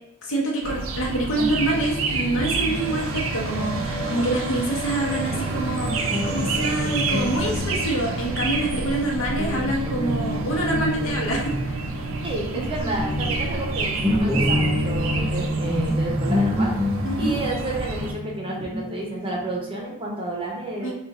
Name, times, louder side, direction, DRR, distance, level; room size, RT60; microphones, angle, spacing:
voice 1, 0.2-12.1 12.5-12.9 17.0-17.4 20.8-20.9, right 1 dB, 65° left, -2 dB, 0.9 m, -26 dB
sound 1, 0.6-18.1, right 3 dB, 70° right, 0.5 m, -29 dB
Guitar, 1.4-9.1 9.4-19.8, left 1 dB, 5° right, 0.3 m, -29 dB
sound 2, 2.7-10.0, right 1 dB, 20° left, 0.9 m, -38 dB
voice 2, 12.2-16.7 17.2-20.9, right 2 dB, 25° right, -2 dB, 0.7 m, -30 dB
2.5 x 2.4 x 4.1 m, 0.92 s
head